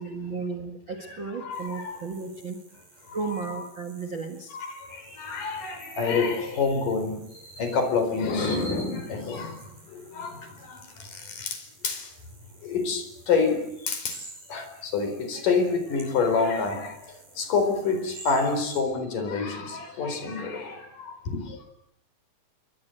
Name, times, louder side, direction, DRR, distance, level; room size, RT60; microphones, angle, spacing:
voice 1, 0.0-2.6 3.1-4.6, right 4 dB, 40° right, 2.0 m, -34 dB
voice 2, 1.0-2.0 3.1-3.2 4.5-12.1 12.6-21.6, left 4 dB, 60° left, 6.0 m, -28 dB
sound 1, 1.5-18.8, right 4 dB, 65° right, 8.9 m, -52 dB
sound 2, 5.8-8.8, right 4 dB, 90° right, 8.7 m, -54 dB
29.0 x 23.0 x 8.0 m
omnidirectional pair, 4.4 m